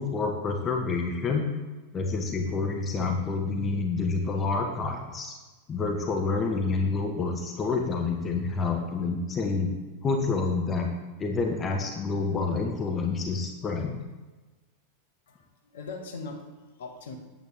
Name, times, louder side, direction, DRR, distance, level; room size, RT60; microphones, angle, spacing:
voice 1, 0.0-1.5 1.9-5.3 5.7-9.7 10.0-10.9 11.2-14.0, left 4 dB, 25° left, 3 dB, 1.0 m, -28 dB
voice 2, 15.3-17.2, left 3 dB, 60° left, 4 dB, 1.4 m, -41 dB
9.2 x 8.1 x 3.6 m, 1.2 s
figure-of-eight pair, 90°, 0 cm